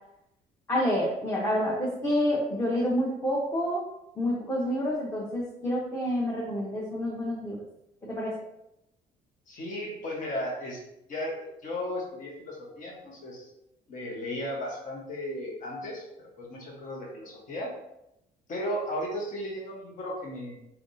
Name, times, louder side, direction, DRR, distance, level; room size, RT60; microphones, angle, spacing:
voice 1, 0.7-3.8 4.2-7.6 8.0-8.4, equal, 15° left, -4 dB, 0.8 m, -28 dB
voice 2, 9.5-10.8 11.1-13.5 13.9-17.7 18.5-20.6, left 1 dB, 50° left, -2 dB, 1.2 m, -35 dB
4.5 x 3.4 x 2.7 m, 0.85 s
cardioid pair, 110°, 17 cm